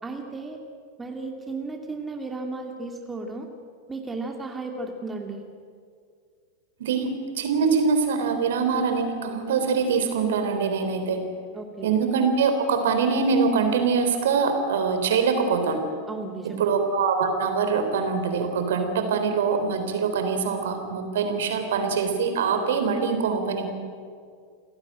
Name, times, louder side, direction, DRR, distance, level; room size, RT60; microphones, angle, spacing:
voice 1, 0.0-0.6 1.0-3.5 3.9-5.4 11.5-12.0 16.1-16.7, right 3 dB, 10° right, 3 dB, 2.5 m, -34 dB
voice 2, 6.8-11.2 11.8-15.8 16.6-23.7, right 5 dB, 60° right, 7 dB, 3.5 m, -24 dB
28.5 x 17.0 x 9.0 m, 2.2 s
figure-of-eight pair, 90°, 0 cm